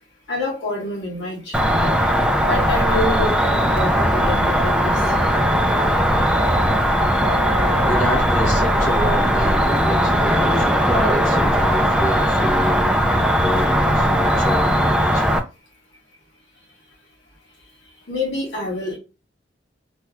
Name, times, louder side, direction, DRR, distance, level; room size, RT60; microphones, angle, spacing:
voice 1, 0.3-2.0 2.4-5.0 18.1-19.0, left 2 dB, 75° left, 1.7 m, -27 dB
Cricket, 1.5-15.4, equal, 5° right, 0.4 m, -18 dB
sound 1, 2.6-6.7 7.2-11.4, right 2 dB, 85° right, 0.7 m, -35 dB
voice 2, 7.8-15.4, equal, 45° left, 1.5 m, -28 dB
3.2 x 3.0 x 2.4 m
head